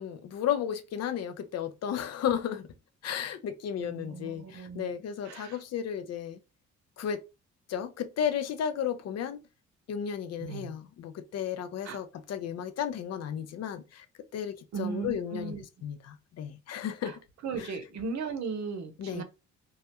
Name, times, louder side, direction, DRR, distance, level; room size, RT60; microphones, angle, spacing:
voice 1, 0.0-2.7 3.0-6.4 7.0-7.2 7.7-9.4 9.9-14.1 14.3-15.5 15.8-17.2 17.6-17.7 19.0-19.2, left 9 dB, 60° left, 0.5 m, -33 dB
voice 2, 3.8-4.9 5.2-5.6 10.4-10.7 11.8-12.0 14.7-15.6 17.0-17.1 17.4-19.2, right 5 dB, 65° right, 0.7 m, -37 dB
2.3 x 2.1 x 2.8 m
cardioid pair, 90°, 30 cm